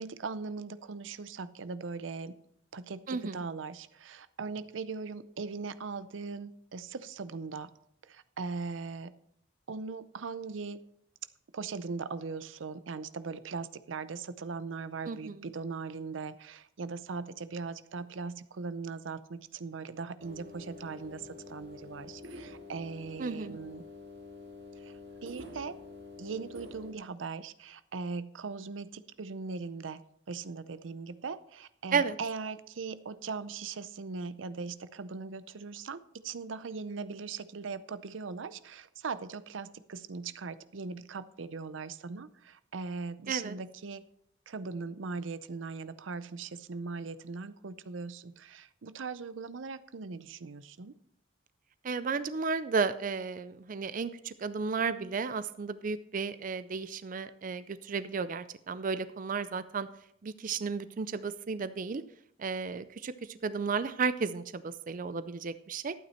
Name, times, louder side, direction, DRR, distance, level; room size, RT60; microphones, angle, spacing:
voice 1, 0.0-2.3 2.7-7.7 8.0-9.1 9.7-10.8 11.5-23.8 24.8-24.9 25.2-25.8 26.2-30.0 30.3-44.0 44.5-50.9, right 4 dB, 90° right, 15 dB, 0.6 m, -39 dB
voice 2, 3.1-3.4 15.1-15.5 23.2-23.6 31.9-32.2 43.3-43.6 51.8-59.9 60.2-62.0 62.4-65.9, right 5 dB, 45° right, 13 dB, 0.5 m, -33 dB
sound 1, 20.2-26.9, left 3 dB, 65° right, 1.8 m, -47 dB
12.0 x 9.0 x 4.3 m, 0.72 s
head